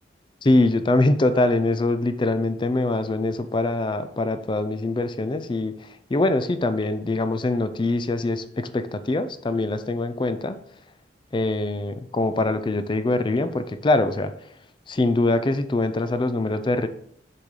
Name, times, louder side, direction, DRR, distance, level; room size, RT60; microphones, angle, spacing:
voice 1, 0.4-10.6 11.3-14.3 14.9-16.9, left 2 dB, 25° left, 11 dB, 0.4 m, -23 dB
6.7 x 4.8 x 3.7 m, 0.68 s
head